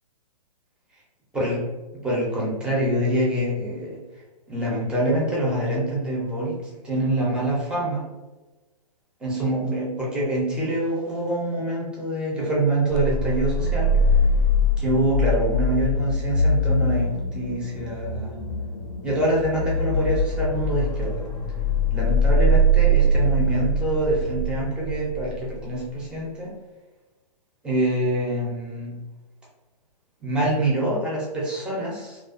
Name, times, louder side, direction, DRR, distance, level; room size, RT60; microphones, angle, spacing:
voice 1, 2.0-4.0 4.5-6.6 6.8-8.1 9.2-13.9 14.8-18.4 19.0-21.3 21.9-26.5 27.6-28.9 30.2-32.2, right 1 dB, 5° right, -5 dB, 0.5 m, -25 dB
sound 1, 12.9-25.5, equal, 55° left, 0.5 m, -22 dB
2.4 x 2.3 x 2.4 m, 1.1 s
hypercardioid pair, 130°, 21 cm